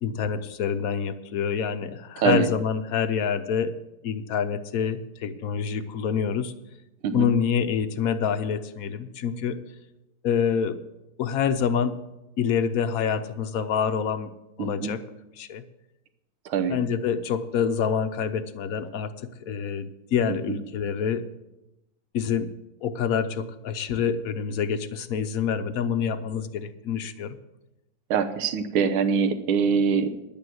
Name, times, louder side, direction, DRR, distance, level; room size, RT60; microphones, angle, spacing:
voice 1, 0.0-3.7 4.0-6.5 7.1-9.6 10.2-10.8 11.2-12.0 12.4-14.3 14.6-15.0 15.4-15.6 16.7-19.1 19.4-21.3 22.1-22.5 22.8-27.4, left 7 dB, 65° left, 10 dB, 0.9 m, -26 dB
voice 2, 2.2-2.5 7.0-7.3 14.6-14.9 16.5-16.8 20.3-20.6 28.1-30.1, right 6 dB, 80° right, 9 dB, 1.8 m, -24 dB
11.0 x 8.7 x 7.7 m, 0.94 s
omnidirectional pair, 2.3 m